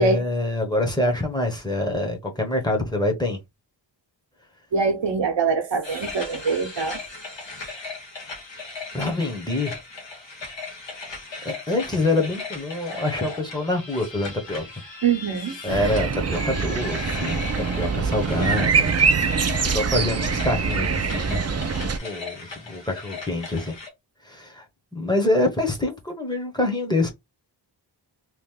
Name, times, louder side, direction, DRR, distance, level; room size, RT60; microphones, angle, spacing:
voice 1, 0.0-3.4 8.9-9.8 11.4-14.6 15.6-17.4 17.7-18.9 19.6-21.4 22.0-23.8 24.2-24.6 24.9-27.1, left 2 dB, 10° left, 1.0 m, -25 dB
voice 2, 4.7-7.0 15.0-15.6, right 4 dB, 70° right, 0.9 m, -23 dB
sound 1, 5.8-23.9, left 3 dB, 70° left, 1.2 m, -37 dB
sound 2, 15.7-22.0, right 5 dB, 35° right, 0.4 m, -24 dB
3.1 x 2.5 x 3.6 m
wide cardioid pair, 110°, 46 cm